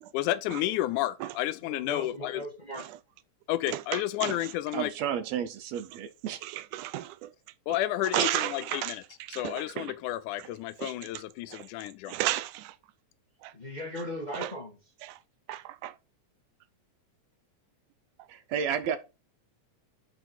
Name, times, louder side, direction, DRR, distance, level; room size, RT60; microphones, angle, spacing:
voice 1, 0.1-2.4 3.5-4.9 7.7-9.0 9.3-12.2, left 15 dB, 90° left, 2.1 m, -31 dB
voice 2, 1.6-2.8 13.5-14.8, equal, 25° left, 1.0 m, -38 dB
voice 3, 3.7-4.4 6.4-7.3 8.1-9.0 9.2-9.9 10.4-10.5 10.8-10.9 11.5-11.6 12.1-12.7 13.4-13.5 14.3-14.5 15.0-15.2 15.5-15.9, right 15 dB, 90° right, 2.2 m, -33 dB
voice 4, 4.7-6.4 18.3-19.0, right 8 dB, 70° right, 1.8 m, -32 dB
7.8 x 4.7 x 4.3 m
omnidirectional pair, 3.5 m